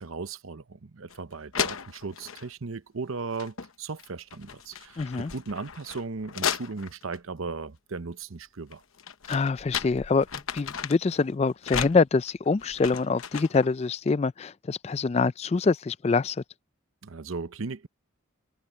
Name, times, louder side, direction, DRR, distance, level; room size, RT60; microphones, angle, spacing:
voice 1, 0.0-8.8 17.0-17.9, right 4 dB, 75° right, 0.8 m, -37 dB
sound 1, 1.1-1.2 1.5-2.5 3.2-3.7 4.0-7.2 8.7-11.2 11.6-13.7, left 7 dB, 80° left, 1.0 m, -35 dB
voice 2, 5.0-5.3 9.3-10.3 10.5-16.4, left 4 dB, 30° left, 0.3 m, -25 dB
head